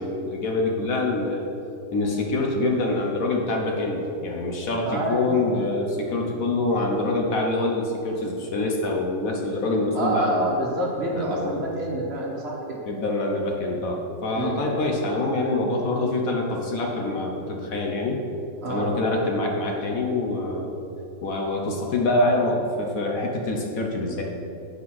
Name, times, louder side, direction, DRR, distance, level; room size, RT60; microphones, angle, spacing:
voice 1, 0.0-1.5 1.9-10.6 11.1-11.6 12.8-18.2 18.7-20.7 21.2-24.2, left 2 dB, 60° left, 1 dB, 1.3 m, -25 dB
voice 2, 4.9-5.4 9.9-12.8 14.3-14.6 18.6-19.0, right 1 dB, 40° right, -3 dB, 1.4 m, -27 dB
8.3 x 5.3 x 6.1 m, 2.7 s
omnidirectional pair, 1.7 m